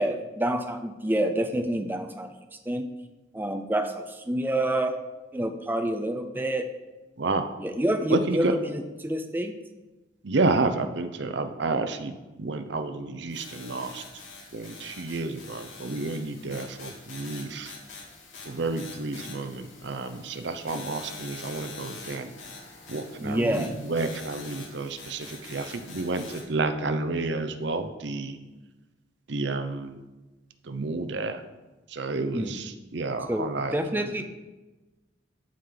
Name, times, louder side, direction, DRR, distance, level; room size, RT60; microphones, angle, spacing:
voice 1, 0.0-2.3 2.7-2.8 3.3-5.0 5.3-6.7 7.6-9.5 23.2-23.7 32.3-32.6 33.3-34.2, right 1 dB, 10° right, 6 dB, 0.4 m, -27 dB
voice 2, 7.2-7.5 8.1-8.5 10.2-14.0 14.5-17.7 18.5-22.3 22.9-28.4 29.3-30.0 30.6-31.4 31.9-34.1, right 3 dB, 65° right, 8 dB, 0.6 m, -30 dB
sound 1, 13.3-26.4, left 4 dB, 90° left, 2.8 m, -45 dB
13.5 x 5.0 x 3.8 m, 1.1 s
head